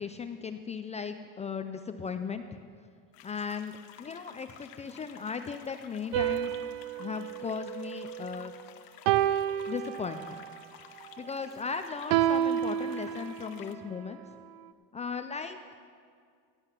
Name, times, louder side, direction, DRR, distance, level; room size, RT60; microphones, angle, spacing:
voice 1, 0.0-2.6 3.2-6.5 7.0-8.5 9.7-10.4 11.2-14.2 14.9-15.6, left 5 dB, 20° left, 8 dB, 0.4 m, -37 dB
sound 1, 3.1-13.7, left 10 dB, 60° left, 1.0 m, -53 dB
sound 2, 6.1-8.5 9.1-10.5 12.1-13.6, right 11 dB, 75° right, 0.6 m, -30 dB
16.5 x 7.9 x 5.8 m, 2.1 s
supercardioid pair, 125°, 39 cm